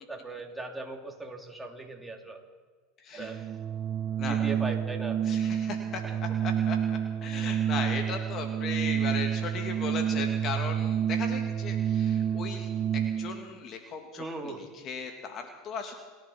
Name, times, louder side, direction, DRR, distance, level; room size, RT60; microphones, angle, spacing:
voice 1, 0.1-2.4 3.2-3.4 4.2-5.2 6.0-6.2 14.2-14.6, right 2 dB, 5° right, 0 dB, 3.1 m, -38 dB
voice 2, 3.0-3.3 4.2-4.5 5.2-6.8 7.2-16.0, left 5 dB, 45° left, 4 dB, 2.2 m, -37 dB
Organ, 3.1-13.5, right 9 dB, 40° right, 0.7 m, -29 dB
29.0 x 10.5 x 4.5 m, 1.4 s
hypercardioid pair, 90°, 0 cm